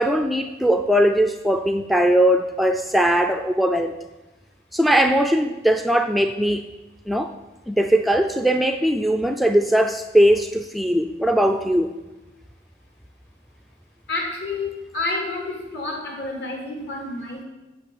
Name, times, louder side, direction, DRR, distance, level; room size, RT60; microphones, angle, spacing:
voice 1, 0.0-3.9 4.7-6.7 7.1-7.3 7.7-11.9, equal, ahead, 5 dB, 0.4 m, -20 dB
voice 2, 14.1-17.4, left 2 dB, 65° left, 0 dB, 3.0 m, -29 dB
8.5 x 6.6 x 8.4 m, 1.1 s
head